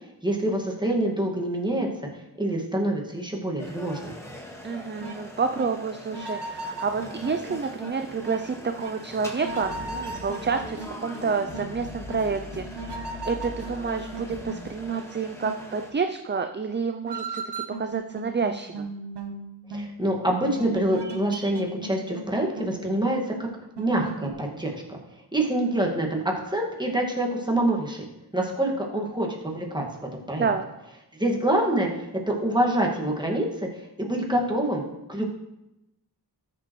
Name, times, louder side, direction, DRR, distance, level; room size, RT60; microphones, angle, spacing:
voice 1, 0.2-1.9 2.4-4.1 19.7-23.2 23.8-25.0 25.3-28.1 28.3-29.8 30.3-30.5 31.1-34.8 35.1-35.2, right 1 dB, 10° right, -1 dB, 2.0 m, -26 dB
sound 1, 3.6-15.9, equal, 5° left, 1.7 m, -43 dB
voice 2, 4.6-12.8 13.3-17.4 17.8-18.9 30.4-30.7, right 5 dB, 30° right, 7 dB, 0.5 m, -29 dB
sound 2, 5.0-5.2 5.6-5.7 6.1-7.9 8.2-8.4 8.8-8.9 9.4-11.2 11.5-11.7 12.1-12.2 12.8-14.6 14.9-15.0 15.4-15.6 17.1-20.0 20.4-22.3 22.6-22.8 23.1-23.3 23.8-24.3, right 2 dB, 75° right, 1.0 m, -36 dB
sound 3, 9.5-14.7, left 2 dB, 75° left, 2.4 m, -41 dB
13.5 x 6.8 x 3.2 m, 0.93 s
wide cardioid pair, 55°, 40 cm